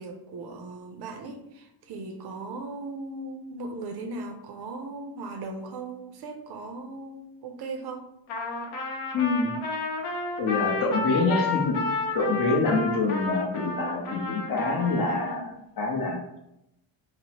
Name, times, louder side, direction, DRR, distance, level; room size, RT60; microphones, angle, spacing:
voice 1, 0.0-8.1, right 3 dB, 55° right, 4 dB, 0.5 m, -38 dB
Trumpet, 8.3-15.4, left 3 dB, 75° left, 0.8 m, -31 dB
voice 2, 9.1-9.5 10.4-11.8 12.1-16.2, left 3 dB, 45° left, 0 dB, 0.7 m, -26 dB
2.9 x 2.0 x 2.8 m, 0.82 s
cardioid pair, 115°, 49 cm